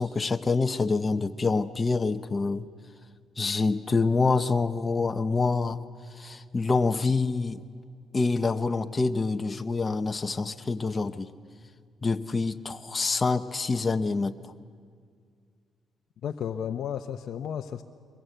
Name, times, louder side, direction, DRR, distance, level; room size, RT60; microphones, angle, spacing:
voice 1, 0.0-2.7 3.4-5.8 6.1-7.6 8.1-11.3 12.0-14.5, left 4 dB, 30° left, 9 dB, 0.9 m, -26 dB
voice 2, 16.2-17.8, left 8 dB, 70° left, 5 dB, 0.7 m, -33 dB
23.5 x 21.5 x 8.0 m, 2.1 s
cardioid pair, 90°, 0 cm